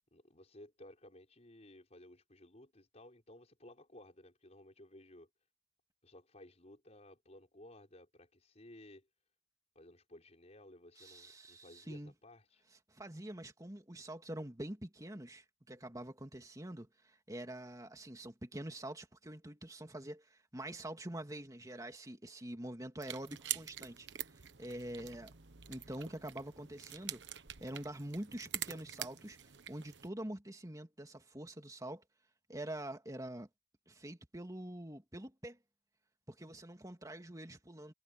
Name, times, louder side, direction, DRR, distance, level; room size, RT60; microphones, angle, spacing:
voice 1, 0.1-5.3 6.0-9.1 9.8-12.6, left 1 dB, 40° left, 5.4 m, -57 dB
voice 2, 11.0-12.1 12.9-24.1 24.6-25.3 25.7-27.2 27.6-32.0 32.5-33.5 33.9-35.6 36.3-37.9, right 1 dB, 20° right, 2.5 m, -45 dB
sound 1, 23.0-30.1, right 11 dB, 90° right, 1.2 m, -45 dB
head